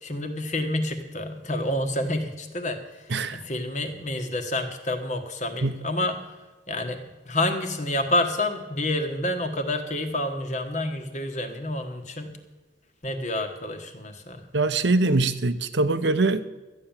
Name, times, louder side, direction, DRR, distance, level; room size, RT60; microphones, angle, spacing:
voice 1, 0.0-6.3 6.7-7.0 7.2-12.4 13.0-14.4, left 1 dB, 40° left, 6 dB, 1.4 m, -28 dB
voice 2, 3.1-3.4 5.6-5.7 14.5-16.5, right 3 dB, 65° right, 12 dB, 0.8 m, -23 dB
14.0 x 9.2 x 7.2 m, 1.2 s
head